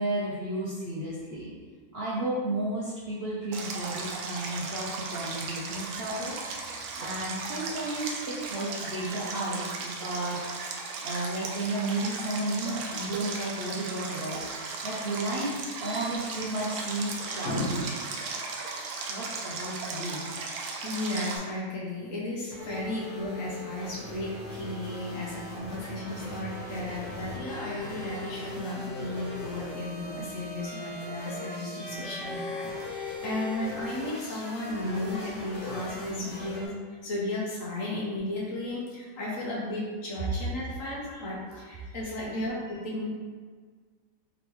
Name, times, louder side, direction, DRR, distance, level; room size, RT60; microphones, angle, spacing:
voice 1, 0.0-1.5 1.9-6.4 6.6-10.4 11.0-14.4 14.8-15.6 15.8-17.8 19.1-20.3 27.7-27.8 34.8-34.9 40.8-41.2, right 1 dB, 55° right, -8 dB, 0.7 m, -33 dB
Stream, 3.5-21.4, right 4 dB, 70° right, 1.0 m, -36 dB
voice 2, 15.8-16.1 17.2-17.8 18.9-19.1 20.7-36.7 37.0-43.1, left 1 dB, 55° left, -5 dB, 1.2 m, -34 dB
sound 1, 22.5-36.7, left 2 dB, 20° left, 1.4 m, -39 dB
3.9 x 3.5 x 3.0 m, 1.5 s
omnidirectional pair, 1.8 m